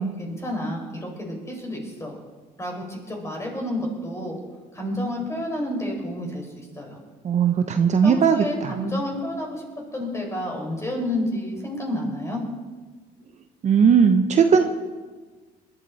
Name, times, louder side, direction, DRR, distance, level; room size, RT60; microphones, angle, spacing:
voice 1, 0.0-2.2 2.6-4.4 4.7-7.0 8.0-9.6 9.9-12.4, left 1 dB, 15° left, 0 dB, 5.1 m, -30 dB
voice 2, 7.2-8.7 13.6-14.6, right 6 dB, 45° right, 6 dB, 1.0 m, -18 dB
21.5 x 12.0 x 4.3 m, 1.4 s
cardioid pair, 110°, 17 cm